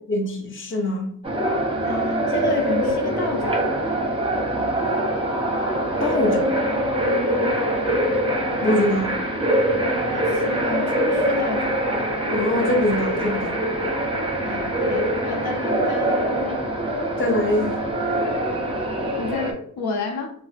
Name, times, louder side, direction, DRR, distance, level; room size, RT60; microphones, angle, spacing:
voice 1, 0.1-1.1 6.0-6.5 8.6-9.1 12.3-13.6 17.2-17.8, left 1 dB, 35° left, 0.6 m, -23 dB
sound 1, 1.2-19.5, right 1 dB, 15° right, 0.6 m, -23 dB
voice 2, 1.8-3.6 7.0-7.5 10.1-11.8 14.4-16.6 19.2-20.3, left 3 dB, 80° left, 0.6 m, -30 dB
2.6 x 2.0 x 3.3 m
wide cardioid pair, 65°, 38 cm